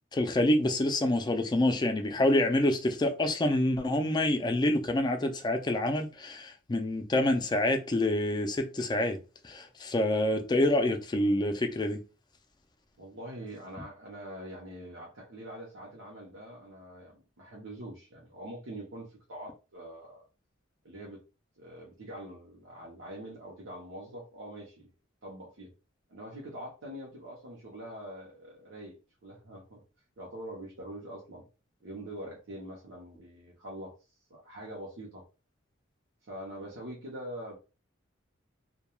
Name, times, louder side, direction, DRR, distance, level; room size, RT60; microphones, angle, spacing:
voice 1, 0.1-9.2 9.4-12.0, left 1 dB, 20° left, 0.4 m, -27 dB
voice 2, 13.0-20.3 20.8-21.2 21.6-24.9 25.2-25.7 26.1-29.8 30.2-31.4 31.8-33.9 34.3-35.2 36.3-37.6, right 1 dB, 80° right, 0.7 m, -44 dB
2.3 x 2.2 x 2.9 m
head